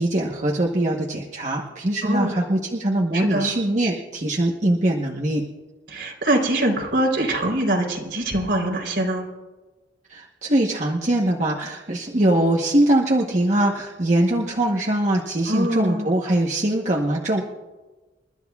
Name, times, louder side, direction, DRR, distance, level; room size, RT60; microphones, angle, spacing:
voice 1, 0.0-5.4 10.1-17.4, right 1 dB, 40° right, -1 dB, 1.1 m, -22 dB
voice 2, 2.0-2.3 3.1-3.5 5.9-9.3 15.5-16.1, right 1 dB, 65° right, 0 dB, 3.6 m, -23 dB
29.0 x 12.5 x 2.4 m, 1.2 s
head